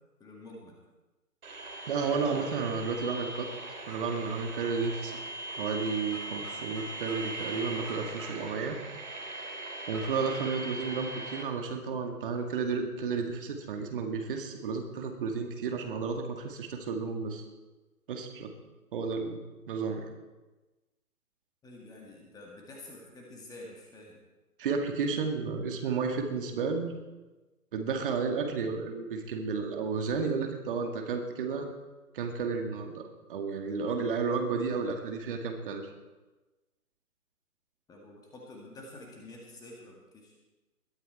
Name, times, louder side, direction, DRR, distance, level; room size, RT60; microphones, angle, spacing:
voice 1, 0.2-0.7 21.6-24.2 37.9-40.3, left 2 dB, 10° left, -1 dB, 1.9 m, -48 dB
sound 1, 1.4-11.4, right 2 dB, 65° right, 3.3 m, -40 dB
voice 2, 1.9-3.5 3.9-5.2 5.6-8.8 9.9-17.4 18.1-18.5 18.9-19.4 19.7-20.1 24.6-26.9 27.7-31.7 32.1-35.8, right 5 dB, 35° right, 3 dB, 2.1 m, -32 dB
21.0 x 12.5 x 4.6 m, 1.1 s
figure-of-eight pair, 135°, 46 cm